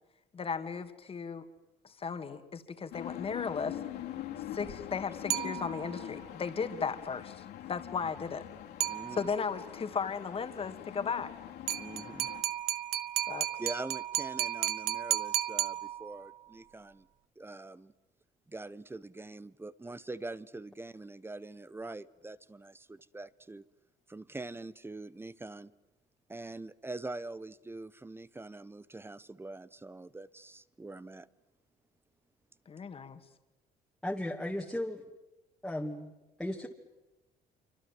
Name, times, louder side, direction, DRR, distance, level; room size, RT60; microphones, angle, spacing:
voice 1, 0.3-1.5 1.8-3.8 4.5-8.4 9.1-11.3 13.3-13.5 32.7-33.2, left 5 dB, 35° left, 8 dB, 2.5 m, -36 dB
sound 1, 2.9-12.4, left 12 dB, 80° left, 2.8 m, -44 dB
sound 2, 5.3-6.1 8.8-9.6 11.7-16.4, right 12 dB, 70° right, 1.0 m, -34 dB
voice 2, 8.9-9.3 11.8-12.3 13.6-17.1 17.4-17.9 18.5-23.6 24.1-25.7 26.3-31.3, right 2 dB, 15° right, 17 dB, 1.0 m, -44 dB
voice 3, 34.0-35.0 35.6-36.1 36.4-36.7, left 1 dB, 5° left, -1 dB, 2.4 m, -35 dB
26.5 x 25.0 x 7.7 m, 1.1 s
cardioid pair, 110°, 17 cm